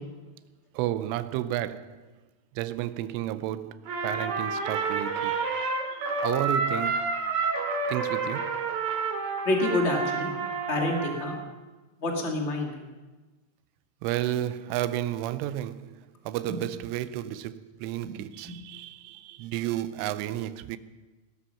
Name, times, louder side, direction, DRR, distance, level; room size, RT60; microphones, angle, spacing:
voice 1, 0.7-2.1 2.6-7.3 7.9-8.6 14.0-20.8, right 13 dB, 90° right, 3.2 m, -32 dB
Trumpet, 3.9-11.4, right 4 dB, 55° right, 3.2 m, -29 dB
voice 2, 9.4-10.3 10.7-11.3 12.0-12.7 18.4-18.5, left 2 dB, 80° left, 0.6 m, -27 dB
18.5 x 13.0 x 5.7 m
omnidirectional pair, 5.5 m